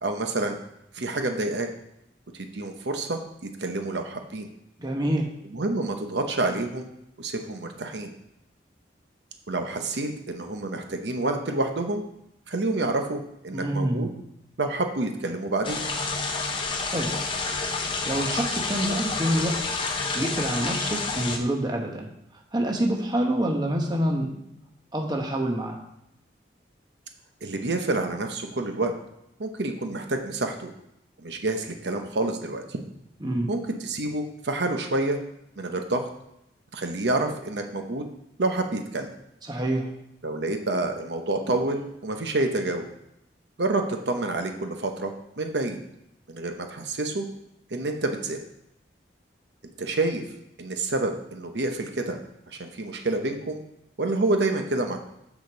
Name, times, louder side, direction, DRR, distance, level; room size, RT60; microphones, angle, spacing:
voice 1, 0.0-0.6 0.9-1.7 2.4-4.5 5.5-6.9 7.2-8.1 9.5-12.0 12.5-14.1 14.6-15.8 27.4-28.9 29.4-30.7 31.2-32.8 33.5-35.2 35.6-36.1 36.7-38.0 38.4-39.1 40.2-42.9 43.6-45.8 46.3-47.2 47.7-48.4 49.8-50.2 50.6-52.2 52.5-53.6 54.0-55.0, right 2 dB, 75° right, 5 dB, 0.9 m, -28 dB
voice 2, 4.8-5.3 13.5-14.1 16.9-17.2 18.0-19.7 20.1-22.1 22.5-24.3 24.9-25.8 33.2-33.5 39.5-39.9, right 1 dB, 25° right, 1 dB, 1.0 m, -26 dB
sound 1, 15.6-21.4, left 3 dB, 30° left, 0.8 m, -29 dB
6.5 x 5.1 x 6.8 m, 0.80 s
head